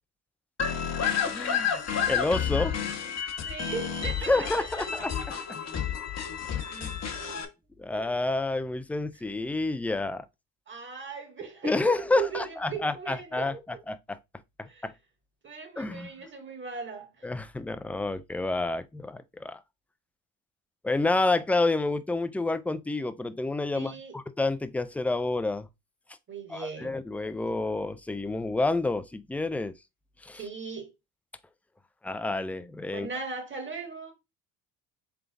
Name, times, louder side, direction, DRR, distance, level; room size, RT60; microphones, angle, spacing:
sound 1, 0.6-7.5, left 7 dB, 45° left, 1.1 m, -30 dB
voice 1, 1.2-2.8 4.3-5.1 5.5-5.6 6.7-7.0 7.8-10.3 11.6-14.2 14.6-14.9 15.8-16.1 17.2-19.6 20.8-25.7 26.5-29.7 30.2-30.4 32.0-33.1, left 2 dB, 5° left, 0.3 m, -29 dB
voice 2, 3.4-4.8 5.2-5.3 7.1-7.4 7.9-8.1 10.7-13.8 14.6-14.8 15.4-17.3 23.7-24.2 26.3-26.9 30.3-30.9 32.9-34.1, right 5 dB, 30° right, 1.8 m, -38 dB
3.7 x 3.5 x 3.5 m
supercardioid pair, 75°, 38 cm